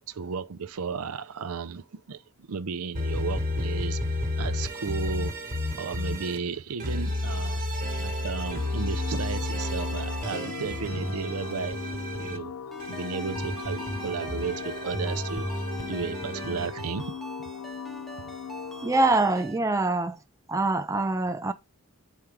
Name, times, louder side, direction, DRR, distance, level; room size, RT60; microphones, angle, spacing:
voice 1, 0.0-4.0 4.4-5.3 5.7-7.6 8.0-12.5 12.9-15.6 15.9-17.1 18.2-18.3, right 5 dB, 70° right, 0.5 m, -34 dB
sound 1, 2.9-6.4 6.8-12.4 12.8-16.7, left 1 dB, 40° right, 1.4 m, -31 dB
sound 2, 8.4-19.3, left 7 dB, 70° left, 0.4 m, -39 dB
Ringtone, 12.7-19.6, equal, ahead, 0.8 m, -45 dB
voice 2, 18.8-20.2 20.5-21.5, right 2 dB, 15° right, 0.4 m, -24 dB
8.0 x 4.6 x 3.5 m
head